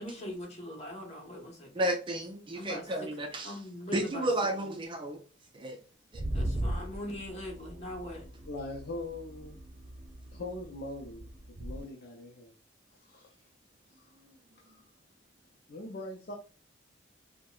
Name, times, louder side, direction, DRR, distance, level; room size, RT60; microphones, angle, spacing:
voice 1, 0.0-1.7 2.5-3.1 3.4-4.3 4.6-4.7 6.3-8.2, left 1 dB, 35° left, 1.1 m, -41 dB
voice 2, 1.7-3.5 3.9-5.2 5.5-5.8 6.1-6.2, right 1 dB, 25° right, 0.5 m, -32 dB
sound 1, 6.1-11.8, right 1 dB, 50° right, 0.8 m, -38 dB
voice 3, 8.5-9.6 10.3-12.5 12.9-13.4 14.0-14.1 14.6-14.8 15.7-16.4, left 2 dB, 55° left, 0.5 m, -42 dB
4.4 x 2.1 x 2.3 m
head